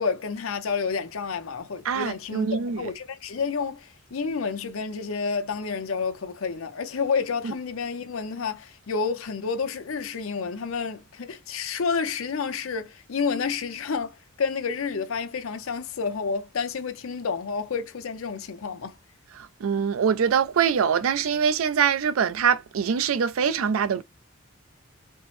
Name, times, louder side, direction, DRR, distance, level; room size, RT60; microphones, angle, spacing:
voice 1, 0.0-19.0, left 5 dB, 85° left, 0.6 m, -30 dB
voice 2, 1.8-2.9 19.4-24.0, right 7 dB, 80° right, 0.4 m, -24 dB
4.3 x 2.0 x 3.1 m
head